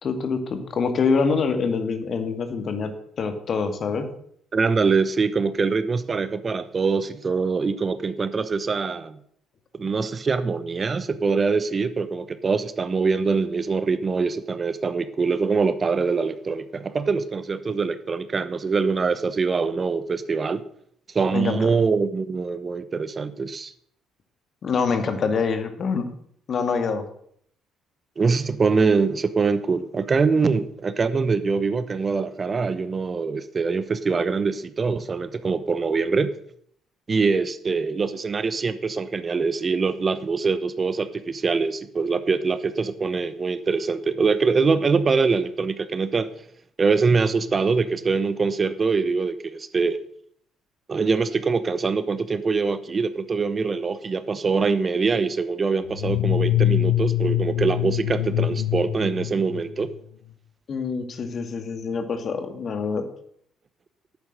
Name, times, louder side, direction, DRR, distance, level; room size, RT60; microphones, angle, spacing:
voice 1, 0.0-2.9 3.2-4.1 21.3-21.7 24.6-26.1 26.5-27.0 60.7-63.1, left 5 dB, 50° left, 8 dB, 2.1 m, -25 dB
voice 2, 4.5-9.2 9.7-20.6 21.1-23.7 28.2-36.3 37.1-46.3 46.8-50.0 50.9-59.9, right 4 dB, 35° right, 14 dB, 1.0 m, -23 dB
sound 1, 55.9-60.0, left 13 dB, 80° left, 0.9 m, -24 dB
11.0 x 8.9 x 6.6 m, 0.66 s
hypercardioid pair, 50°, 0 cm